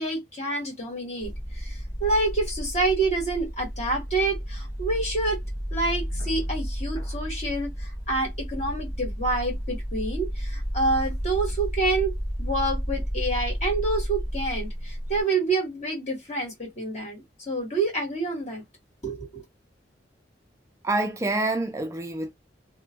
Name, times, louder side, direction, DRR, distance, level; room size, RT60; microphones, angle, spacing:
voice 1, 0.0-5.4 5.7-18.6 19.0-19.4, right 2 dB, 40° left, 1.8 m, -28 dB
sound 1, 1.2-15.2, equal, 20° left, 1.1 m, -32 dB
voice 2, 20.8-22.3, right 2 dB, 15° right, 0.3 m, -27 dB
2.9 x 2.1 x 2.8 m
head